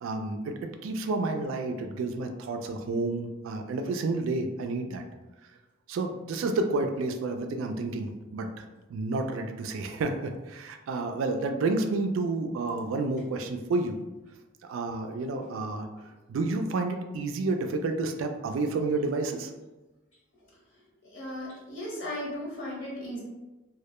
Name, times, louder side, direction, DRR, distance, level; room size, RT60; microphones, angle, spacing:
voice 1, 0.0-5.0 5.9-8.6 8.9-14.0 14.7-15.9 16.3-19.5, right 3 dB, 80° right, 6 dB, 0.3 m, -30 dB
voice 2, 21.0-23.2, left 1 dB, 65° left, -4 dB, 0.8 m, -36 dB
2.1 x 2.1 x 2.9 m, 1.1 s
head